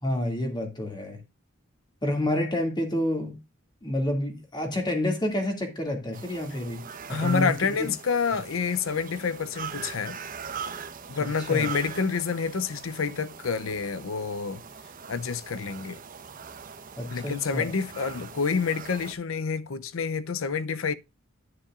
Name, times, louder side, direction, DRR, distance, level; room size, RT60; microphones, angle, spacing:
voice 1, 0.0-1.2 2.0-3.4 3.8-6.8 7.1-7.9 11.5-11.7 17.0-17.7, left 1 dB, 20° left, 2.3 m, -29 dB
sound 1, 6.1-19.1, right 6 dB, 45° right, 0.9 m, -41 dB
voice 2, 7.1-10.2 11.1-14.6 15.1-16.0 17.1-20.9, left 5 dB, 80° left, 0.6 m, -28 dB
9.9 x 9.8 x 2.4 m
head